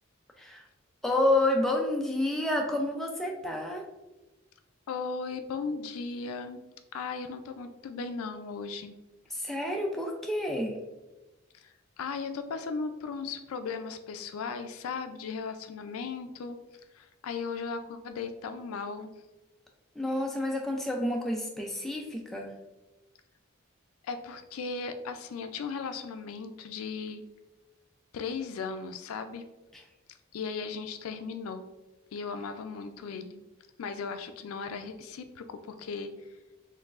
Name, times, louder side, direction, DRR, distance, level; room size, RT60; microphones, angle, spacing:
voice 1, 1.0-3.8 9.3-10.8 20.0-22.5 29.7-29.8, left 1 dB, ahead, 0 dB, 0.3 m, -29 dB
voice 2, 4.9-6.6 6.9-8.9 11.5-16.6 16.9-19.1 24.0-27.2 28.1-29.5 30.3-31.6 32.1-33.4 33.8-36.1, left 5 dB, 90° left, 8 dB, 0.4 m, -37 dB
4.5 x 3.1 x 2.4 m, 1.1 s
head